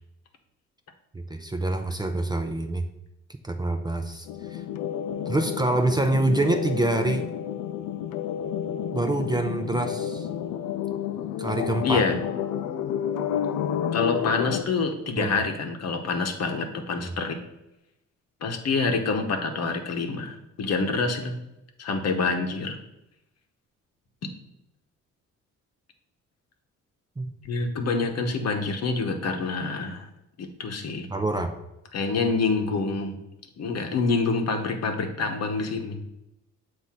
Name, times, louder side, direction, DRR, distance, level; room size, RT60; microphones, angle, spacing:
voice 1, 1.1-2.8 3.4-4.6 5.3-7.3 8.9-10.3 11.4-12.0 15.2-15.4 17.0-17.1 27.2-27.3 31.1-31.6, right 2 dB, 15° right, 5 dB, 0.5 m, -26 dB
sound 1, 4.3-14.6, left 9 dB, 80° left, 0.5 m, -30 dB
voice 2, 11.8-12.1 13.9-17.4 18.4-21.3 21.8-22.8 27.4-30.1 30.4-31.1 31.9-33.1 33.6-36.0, left 4 dB, 55° left, 5 dB, 1.0 m, -27 dB
7.2 x 2.6 x 5.7 m, 0.89 s
cardioid pair, 90°, 30 cm